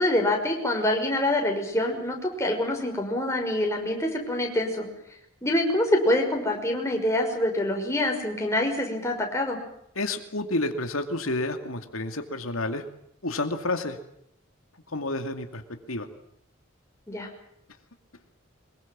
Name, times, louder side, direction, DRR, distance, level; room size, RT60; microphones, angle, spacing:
voice 1, 0.0-4.9 5.4-9.6 17.1-17.3, left 1 dB, 15° left, 1 dB, 5.8 m, -25 dB
voice 2, 10.0-12.9 13.2-14.0 14.9-15.6 15.9-16.1, left 2 dB, 85° left, 6 dB, 2.4 m, -29 dB
24.5 x 22.0 x 7.4 m, 0.76 s
head